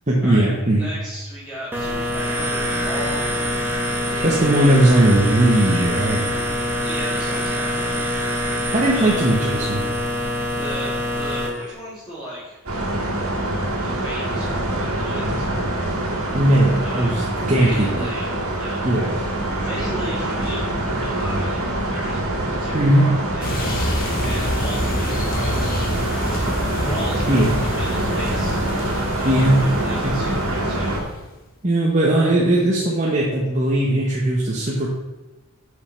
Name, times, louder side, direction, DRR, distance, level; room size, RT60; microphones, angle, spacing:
voice 1, 0.1-0.9 4.2-6.2 8.7-9.8 16.3-18.1 18.8-19.1 22.7-23.1 27.3-27.5 29.2-29.6 30.0-30.1 31.6-34.9, right 1 dB, 30° right, -4 dB, 1.1 m, -18 dB
voice 2, 0.8-3.3 4.0-4.4 6.8-8.1 8.9-9.3 10.6-12.6 13.8-15.7 16.8-17.1 17.5-18.3 18.6-18.8 19.4-20.6 20.9-23.5 24.2-28.6 29.1-31.0 32.0-32.3, equal, 20° left, -11 dB, 2.3 m, -35 dB
sound 1, 1.7-11.5, left 1 dB, 10° right, 1.3 m, -24 dB
sound 2, 12.7-31.0, right 1 dB, 80° right, 2.0 m, -25 dB
sound 3, 23.4-31.3, left 1 dB, 40° left, 1.1 m, -27 dB
8.0 x 5.4 x 5.8 m, 1.1 s
head